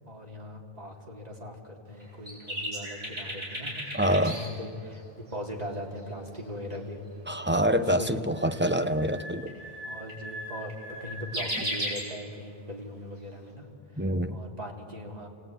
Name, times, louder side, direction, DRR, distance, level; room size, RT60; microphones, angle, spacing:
voice 1, 0.1-3.9 4.2-7.0 7.4-8.5 9.8-13.7 13.9-15.3, equal, 40° right, 3.2 m, -40 dB
sound 1, 2.0-4.5 4.9-5.0 5.3-5.4 8.4-12.1, equal, 60° right, 7.7 m, -36 dB
voice 2, 3.9-4.4 7.3-9.6 14.0-14.4, equal, 10° right, 0.7 m, -26 dB
27.5 x 19.5 x 9.2 m
omnidirectional pair, 1.1 m